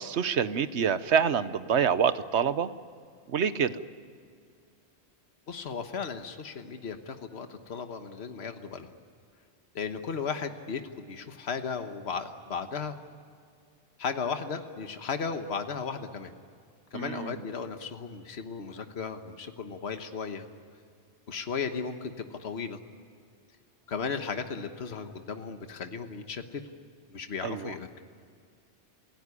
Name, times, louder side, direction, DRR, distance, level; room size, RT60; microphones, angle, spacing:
voice 1, 0.0-2.7 3.3-3.8 16.9-17.4 27.4-27.7, right 7 dB, 80° right, 13 dB, 1.2 m, -27 dB
voice 2, 5.5-8.9 9.7-13.0 14.0-16.3 16.9-20.5 21.3-22.8 23.9-26.6 27.1-28.0, left 5 dB, 70° left, 7 dB, 1.5 m, -35 dB
28.0 x 16.5 x 9.8 m, 2.3 s
omnidirectional pair, 1.1 m